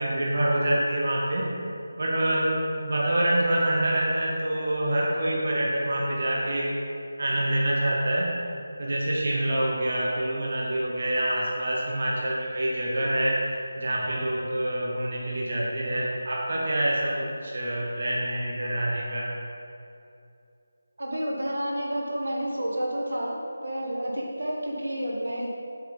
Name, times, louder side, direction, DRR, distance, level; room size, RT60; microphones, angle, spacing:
voice 1, 0.0-1.5 2.0-6.8 7.2-8.3 8.8-13.4 13.8-19.3, right 1 dB, 45° right, -3 dB, 1.0 m, -26 dB
voice 2, 21.0-25.5, equal, 85° right, -1 dB, 1.5 m, -30 dB
6.9 x 5.4 x 4.0 m, 2.7 s
figure-of-eight pair, 175°, 0 cm